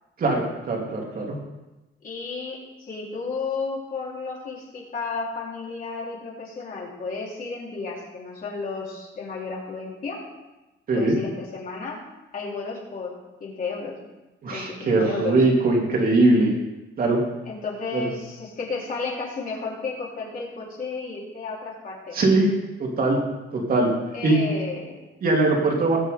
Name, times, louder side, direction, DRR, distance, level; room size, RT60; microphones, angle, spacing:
voice 1, 0.2-1.4 10.9-11.2 14.4-16.5 17.0-17.2 17.9-18.1 22.1-22.5 22.8-23.2 23.5-23.9 24.2-24.4 25.2-26.0, right 2 dB, 45° right, -1 dB, 3.2 m, -21 dB
voice 2, 2.0-10.2 10.9-12.0 12.3-14.0 14.5-15.4 17.5-22.2 24.1-25.0, left 4 dB, 45° left, -5 dB, 4.5 m, -33 dB
19.5 x 8.1 x 4.0 m, 1.1 s
cardioid pair, 140°, 21 cm